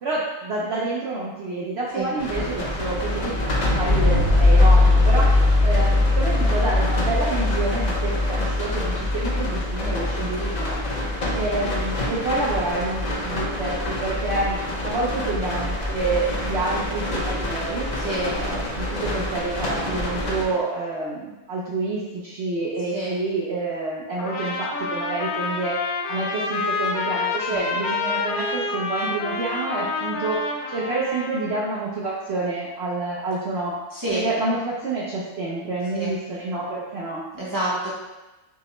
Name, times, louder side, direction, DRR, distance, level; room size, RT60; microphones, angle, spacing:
voice 1, 0.0-3.5 3.7-5.3 5.6-10.8 11.3-17.9 18.3-25.8 26.1-33.7 34.1-37.2, right 2 dB, 60° right, -5 dB, 0.7 m, -28 dB
voice 2, 1.9-2.7 18.0-18.4 22.9-23.2 27.5-27.7 33.9-34.3 35.9-36.1 37.3-37.9, right 1 dB, 20° right, -8 dB, 0.5 m, -29 dB
sound 1, 2.2-20.4, left 2 dB, 55° left, 0.4 m, -23 dB
Trumpet, 24.2-31.6, left 3 dB, 75° left, 1.0 m, -28 dB
6.0 x 2.1 x 2.9 m, 1.1 s
omnidirectional pair, 1.6 m